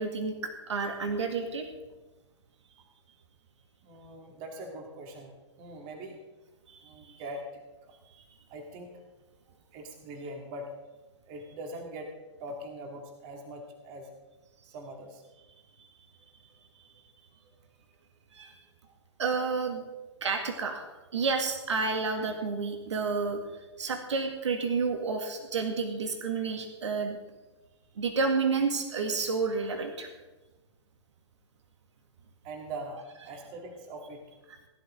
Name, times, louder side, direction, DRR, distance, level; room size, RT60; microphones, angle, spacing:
voice 1, 0.0-1.7 6.7-6.8 18.3-18.5 19.2-19.8 20.2-20.9 21.1-23.4 23.8-27.2 28.0-30.1, right 4 dB, 75° right, 4 dB, 2.0 m, -30 dB
voice 2, 3.8-5.3 5.6-6.2 6.8-7.9 8.5-9.0 9.7-10.8 11.3-12.1 12.4-14.1 14.7-15.2 18.8-18.9 32.4-34.2, right 1 dB, 35° right, 2 dB, 2.2 m, -42 dB
18.0 x 11.0 x 3.8 m, 1.2 s
hypercardioid pair, 125°, 15 cm